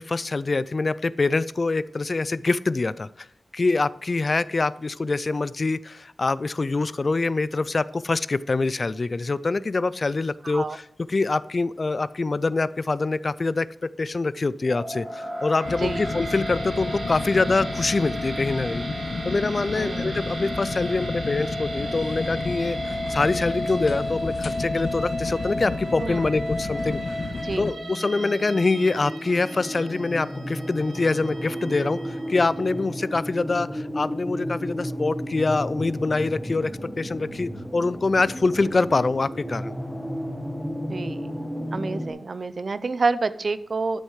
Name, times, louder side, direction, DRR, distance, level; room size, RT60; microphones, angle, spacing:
voice 1, 0.0-3.3 3.5-18.8 19.2-27.0 27.6-36.7 37.0-39.7, left 3 dB, 40° left, 18 dB, 0.3 m, -25 dB
voice 2, 10.4-10.8 15.8-16.0 19.7-20.1 26.0-26.2 27.4-27.7 40.9-41.3 41.7-44.0, right 4 dB, 50° right, 14 dB, 0.5 m, -28 dB
sound 1, 14.6-32.9, equal, 80° right, 3.0 m, -34 dB
sound 2, 15.6-27.7, left 3 dB, 60° left, 0.7 m, -32 dB
sound 3, 25.9-42.1, equal, ahead, 1.4 m, -34 dB
12.5 x 6.4 x 4.8 m, 0.75 s
wide cardioid pair, 125°, 0 cm